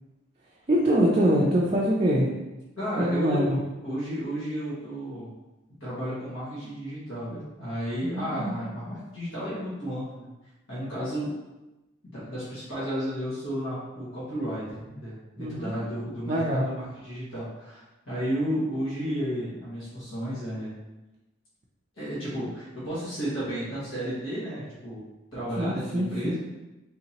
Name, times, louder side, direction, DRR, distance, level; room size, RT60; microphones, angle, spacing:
voice 1, 0.7-2.3 3.0-3.6 8.0-8.6 15.4-15.8 16.3-16.7 25.6-26.3, equal, 30° right, -5 dB, 0.4 m, -24 dB
voice 2, 2.8-5.3 5.8-10.3 10.7-11.3 12.1-20.7 21.9-25.0 25.3-26.4, equal, 80° left, -10 dB, 1.4 m, -33 dB
3.5 x 2.8 x 2.8 m, 1.0 s
head